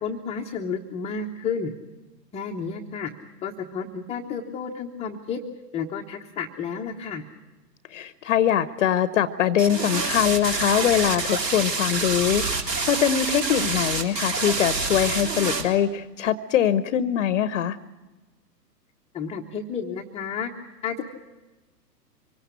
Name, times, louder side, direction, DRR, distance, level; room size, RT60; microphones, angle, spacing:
voice 1, 0.0-1.7 2.3-3.1 3.4-5.4 5.7-7.2 19.1-20.5 20.8-21.0, left 6 dB, 10° left, 2 dB, 0.9 m, -31 dB
voice 2, 7.9-12.5 12.9-17.8, left 10 dB, 45° left, 14 dB, 0.9 m, -22 dB
sound 1, 9.6-15.6, right 3 dB, 75° right, 3.8 m, -27 dB
25.0 x 18.0 x 8.2 m, 1.2 s
figure-of-eight pair, 115°, 50 cm